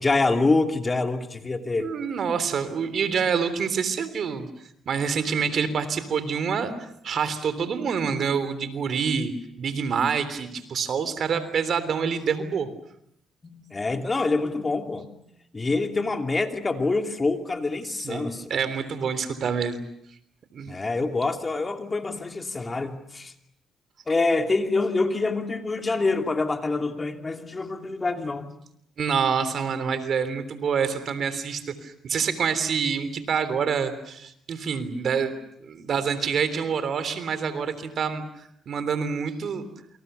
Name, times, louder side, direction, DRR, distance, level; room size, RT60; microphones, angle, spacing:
voice 1, 0.0-1.9 13.4-15.1 15.5-18.4 20.7-23.3 24.1-28.5, left 3 dB, 25° left, 5 dB, 2.7 m, -26 dB
voice 2, 1.8-4.5 4.9-9.3 9.6-12.7 18.0-19.8 20.5-20.7 29.0-35.3 35.6-39.7, right 6 dB, 60° right, 12 dB, 3.4 m, -27 dB
28.5 x 26.0 x 6.8 m, 0.73 s
cardioid pair, 90°, 0 cm